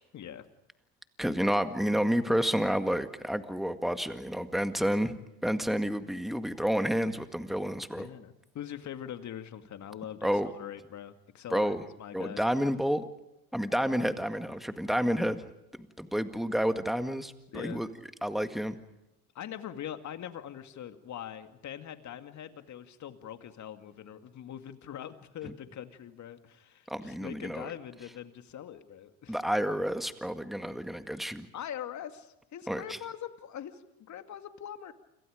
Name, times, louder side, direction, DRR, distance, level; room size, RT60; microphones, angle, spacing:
voice 1, 0.1-0.5 7.9-12.4 17.5-17.8 19.3-29.4 31.5-34.9, left 10 dB, 40° left, 8 dB, 2.3 m, -42 dB
voice 2, 1.2-5.2 5.4-8.1 10.2-10.5 11.5-11.8 12.1-13.1 13.5-15.5 15.8-17.9 18.2-18.8 25.4-25.5 26.9-27.7 29.3-31.5 32.7-33.0, equal, ahead, 9 dB, 1.9 m, -30 dB
29.0 x 27.0 x 5.2 m, 0.91 s
hypercardioid pair, 80°, 44 cm